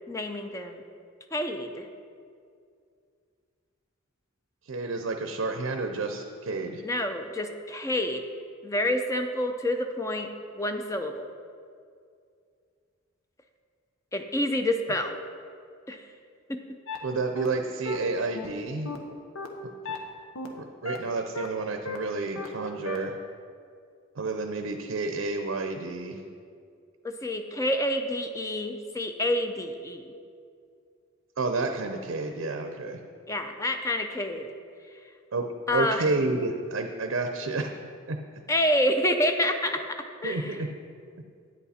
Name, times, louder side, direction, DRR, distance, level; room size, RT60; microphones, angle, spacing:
voice 1, 0.1-0.8 1.3-1.9 6.8-8.3 8.6-10.3 10.6-11.3 14.1-15.2 15.9-16.1 16.5-16.6 27.0-30.1 33.3-34.5 35.7-36.1 38.5-40.0 40.2-40.6, left 1 dB, 15° left, 7 dB, 0.4 m, -28 dB
voice 2, 4.7-6.8 17.0-18.9 20.6-23.2 24.1-26.2 31.4-33.0 35.3-35.5 35.7-37.8 38.1-38.2 40.2-40.7, right 3 dB, 70° right, 5 dB, 0.6 m, -30 dB
sound 1, 16.9-17.0 17.4-17.5 17.9-18.0 18.4-18.5 18.9-19.0 19.4-19.5 19.9-20.0 20.4-20.5 20.9-21.0 21.4-21.5 21.9-22.0 22.4-22.5 22.9-23.0, left 3 dB, 90° left, 1.0 m, -34 dB
9.1 x 8.3 x 4.2 m, 2.3 s
head